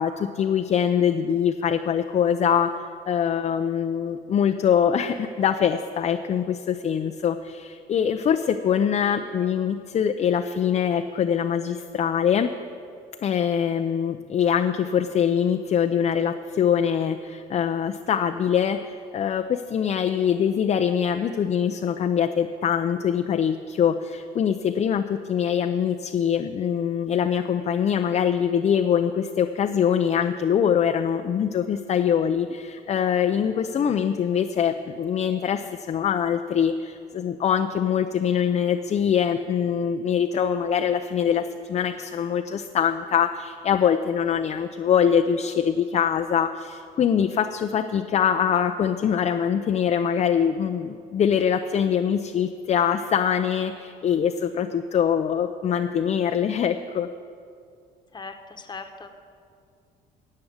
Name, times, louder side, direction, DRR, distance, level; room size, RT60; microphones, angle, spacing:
voice 1, 0.0-12.5 13.2-57.1, left 8 dB, 40° left, 6 dB, 0.6 m, -23 dB
voice 2, 58.1-59.1, left 4 dB, 25° left, 7 dB, 1.2 m, -39 dB
13.0 x 8.6 x 8.0 m, 2.3 s
cardioid pair, 110°, 17 cm